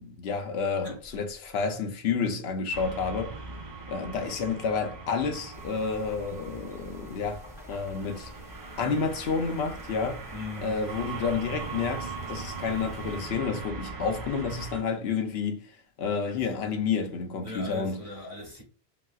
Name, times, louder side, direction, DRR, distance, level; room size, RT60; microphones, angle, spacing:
voice 1, 0.0-3.3 3.9-7.4 7.7-8.3 8.8-10.2 10.6-18.0, left 5 dB, 75° left, 0.8 m, -30 dB
voice 2, 0.8-1.3 10.3-10.9 16.3-17.1 17.4-18.6, left 2 dB, 25° right, 1.2 m, -41 dB
sound 1, 2.7-14.8, right 4 dB, 45° right, 0.8 m, -40 dB
sound 2, 5.5-13.2, equal, 5° right, 0.8 m, -48 dB
3.9 x 2.0 x 2.3 m
omnidirectional pair, 1.1 m